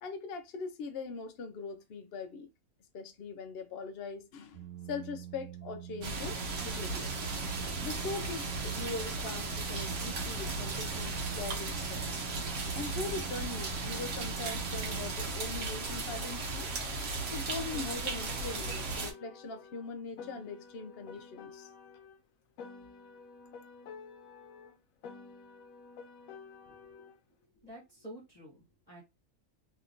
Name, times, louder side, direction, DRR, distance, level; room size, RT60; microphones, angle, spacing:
voice 1, 0.0-2.5 2.9-7.1 7.8-12.1 12.7-16.7 17.3-21.7, left 4 dB, 60° left, 0.7 m, -41 dB
sound 1, 4.5-15.1, right 12 dB, 85° right, 1.1 m, -45 dB
sound 2, 6.0-19.1, right 3 dB, 65° right, 1.2 m, -36 dB
Piano, 17.7-22.2 22.6-27.2, left 5 dB, 80° left, 1.1 m, -50 dB
voice 2, 26.6-27.0 27.5-29.0, right 1 dB, 30° left, 1.1 m, -50 dB
3.1 x 2.8 x 2.6 m
omnidirectional pair, 1.4 m